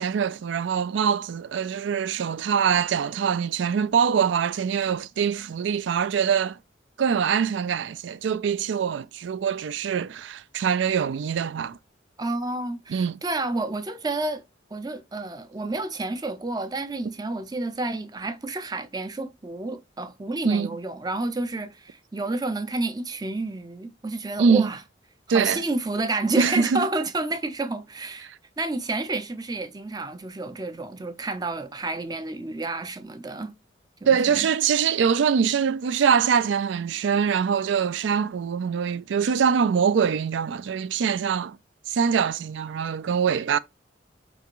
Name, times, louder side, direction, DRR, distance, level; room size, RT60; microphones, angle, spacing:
voice 1, 0.0-6.6 7.0-11.8 12.9-13.2 20.4-20.7 24.4-24.7 25.3-25.6 26.4-26.9 34.1-41.6 41.9-43.6, right 7 dB, 80° right, 0.4 m, -23 dB
voice 2, 12.2-14.4 14.7-24.8 25.3-28.3 28.6-33.5 34.0-34.5, right 2 dB, 20° right, 0.5 m, -30 dB
5.0 x 3.4 x 3.0 m
head